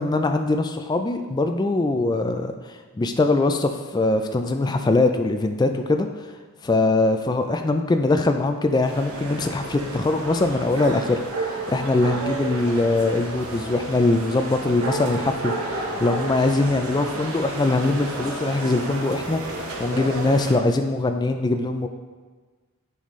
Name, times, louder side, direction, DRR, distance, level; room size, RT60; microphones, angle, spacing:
voice 1, 0.0-6.3 6.6-21.9, left 2 dB, 20° left, 6 dB, 0.3 m, -22 dB
sound 1, 8.8-20.6, right 2 dB, 80° right, 1.0 m, -31 dB
9.4 x 4.1 x 3.1 m, 1.4 s
head